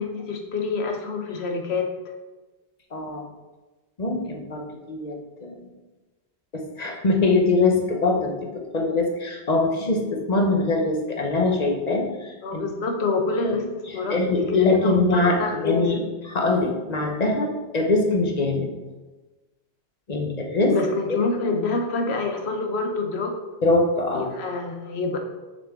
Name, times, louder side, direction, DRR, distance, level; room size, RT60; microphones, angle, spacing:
voice 1, 0.0-1.9 12.4-13.6 13.9-16.0 20.7-23.4 24.1-25.2, left 3 dB, 80° left, 4 dB, 1.2 m, -27 dB
voice 2, 2.9-3.2 4.0-5.7 6.5-8.5 8.7-12.6 13.4-13.6 13.9-18.7 20.1-20.8 21.1-21.2 23.6-24.3, left 3 dB, 40° left, 2 dB, 1.1 m, -23 dB
6.8 x 6.5 x 3.7 m, 1.2 s
omnidirectional pair, 1.1 m